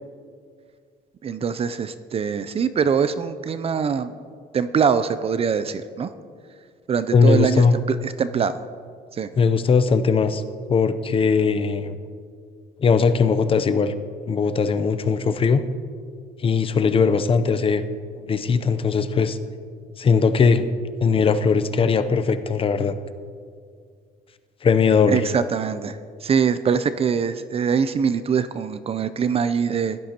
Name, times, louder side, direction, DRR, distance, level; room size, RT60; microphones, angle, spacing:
voice 1, 1.2-4.1 4.5-6.1 6.9-8.6 9.1-9.3 25.1-30.0, right 6 dB, 35° right, 13 dB, 0.5 m, -23 dB
voice 2, 7.1-7.7 9.4-10.4 10.7-12.0 12.8-13.9 14.3-15.6 16.4-17.8 18.2-19.4 20.0-20.6 21.0-23.0 24.6-25.2, left 5 dB, 35° left, 11 dB, 0.6 m, -19 dB
16.5 x 12.0 x 2.9 m, 2.1 s
cardioid pair, 110°, 17 cm